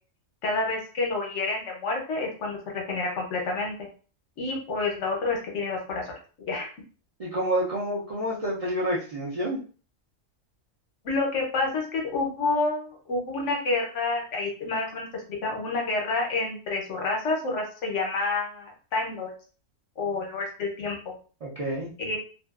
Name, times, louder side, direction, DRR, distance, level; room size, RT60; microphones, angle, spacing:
voice 1, 0.4-3.9 4.4-6.1 6.5-6.7 11.0-19.3 20.0-21.1 22.0-22.2, left 3 dB, 70° left, 0 dB, 1.0 m, -29 dB
voice 2, 7.2-9.6 21.4-21.9, right 1 dB, 45° right, -7 dB, 0.4 m, -28 dB
2.6 x 2.3 x 2.3 m, 0.38 s
omnidirectional pair, 1.3 m